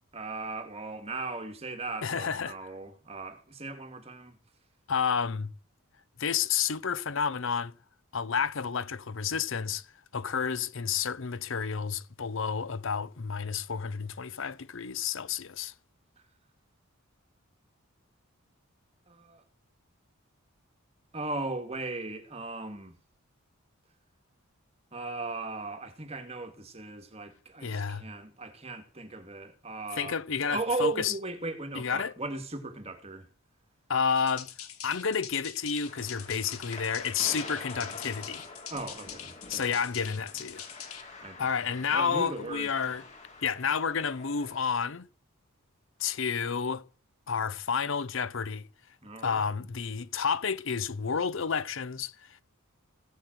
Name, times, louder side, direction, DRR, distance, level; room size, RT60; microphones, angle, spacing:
voice 1, 0.1-4.4 19.1-19.4 21.1-23.0 24.9-33.3 38.7-39.6 41.2-41.5 41.9-42.7 49.0-49.4, right 3 dB, 30° right, 2.2 m, -37 dB
voice 2, 2.0-2.6 4.9-5.5 6.2-7.7 8.1-9.9 10.1-15.7 27.6-28.0 30.0-31.1 31.8-32.1 33.9-34.5 34.8-38.4 39.5-40.6 41.4-43.0 43.4-45.1 46.0-46.8 47.3-48.6 49.2-52.4, left 6 dB, 60° left, 0.7 m, -30 dB
sound 1, 34.2-41.0, left 9 dB, 85° left, 2.1 m, -44 dB
sound 2, 35.9-44.7, left 3 dB, 35° left, 4.3 m, -46 dB
16.0 x 7.9 x 7.9 m
head